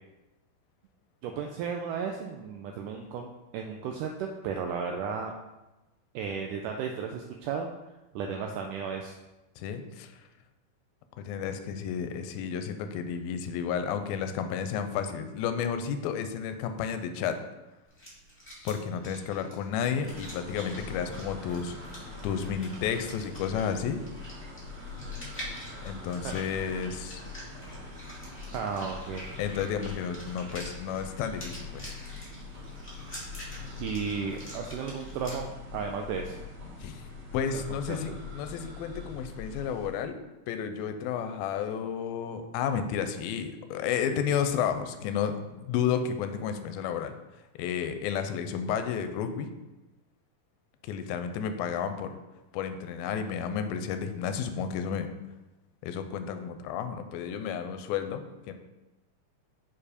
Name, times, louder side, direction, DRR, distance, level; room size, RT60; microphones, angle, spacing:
voice 1, 1.2-5.3 6.1-7.7 8.1-9.1 26.2-26.3 28.5-29.3 33.8-36.4 37.5-37.6 37.9-38.0, right 6 dB, 85° right, 3 dB, 1.8 m, -34 dB
voice 2, 9.6-10.2 11.2-17.4 18.7-24.0 25.8-27.2 29.4-32.0 36.8-37.0 37.3-40.2 40.5-47.2 47.6-49.5 50.8-52.1 52.5-55.1 55.8-58.5, left 7 dB, 85° left, 8 dB, 2.4 m, -32 dB
sound 1, 17.8-35.4, equal, 5° left, 0.9 m, -47 dB
sound 2, 20.0-39.9, left 3 dB, 40° right, 3.2 m, -43 dB
7.2 x 4.7 x 5.0 m, 1.0 s
omnidirectional pair, 4.2 m